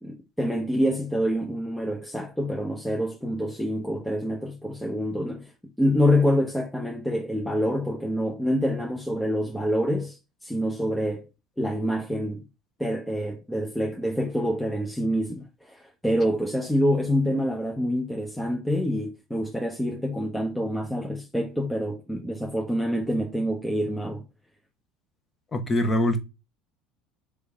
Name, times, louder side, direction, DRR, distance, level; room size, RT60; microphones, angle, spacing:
voice 1, 0.0-5.5 5.8-11.2 11.6-12.5 12.8-24.3, equal, 5° left, 0.8 m, -26 dB
voice 2, 25.5-26.2, left 1 dB, 25° left, 1.1 m, -23 dB
3.5 x 3.4 x 4.0 m
hypercardioid pair, 85°, 0 cm